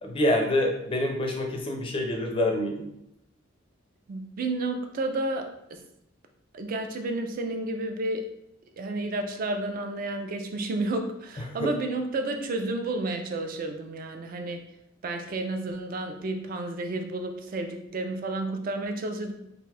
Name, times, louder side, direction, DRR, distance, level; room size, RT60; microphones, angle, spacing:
voice 1, 0.0-2.9 11.6-11.7, left 1 dB, 25° left, 2 dB, 0.4 m, -26 dB
voice 2, 4.1-5.8 6.5-8.3 8.8-14.6 15.0-19.3, right 2 dB, 45° right, 5 dB, 0.3 m, -31 dB
2.5 x 2.2 x 3.3 m, 0.80 s
head